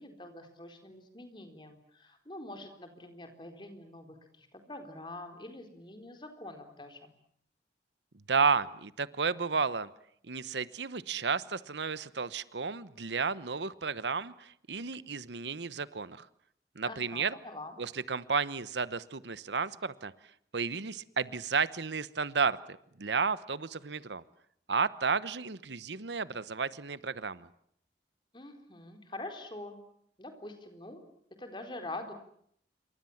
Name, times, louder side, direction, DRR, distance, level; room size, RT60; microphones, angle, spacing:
voice 1, 0.0-7.1 16.9-17.8 28.3-29.8 30.2-31.0 31.4-32.1, left 2 dB, 25° left, 6 dB, 4.2 m, -45 dB
voice 2, 8.3-9.9 10.3-16.3 16.8-17.3 17.8-20.1 20.5-24.2 24.7-27.5, right 5 dB, 85° right, 16 dB, 1.0 m, -32 dB
27.5 x 24.0 x 7.3 m, 0.69 s
head